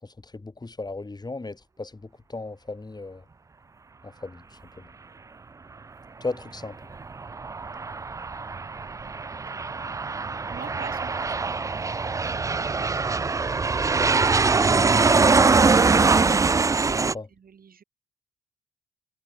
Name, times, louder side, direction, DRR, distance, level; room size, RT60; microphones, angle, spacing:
voice 1, 0.0-3.2 4.0-4.9 6.2-6.8 17.0-17.3, left 3 dB, 20° left, 5.2 m, -36 dB
Aircraft, 6.9-17.1, right 4 dB, 15° right, 0.4 m, -23 dB
voice 2, 10.5-11.5 12.3-13.0 16.5-17.8, right 7 dB, 45° right, 4.3 m, -45 dB
cardioid pair, 90°, 20 cm